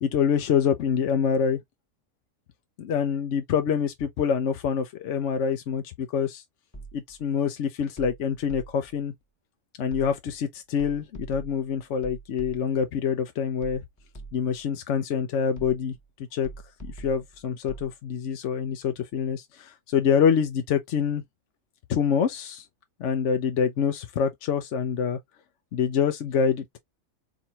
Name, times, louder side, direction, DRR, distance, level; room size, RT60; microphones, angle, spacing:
voice 1, 0.0-1.6 2.8-6.4 6.9-9.1 9.8-13.8 14.3-15.9 16.3-16.5 16.8-21.2 21.9-22.6 23.0-25.2 25.7-26.8, left 7 dB, 60° left, 0.9 m, -26 dB
sound 1, 6.7-7.3 8.0-9.0 9.9-10.4 10.8-12.9 13.6-14.7 15.6-16.1 16.4-17.9, right 3 dB, 15° left, 1.3 m, -44 dB
4.3 x 3.8 x 2.8 m
omnidirectional pair, 1.5 m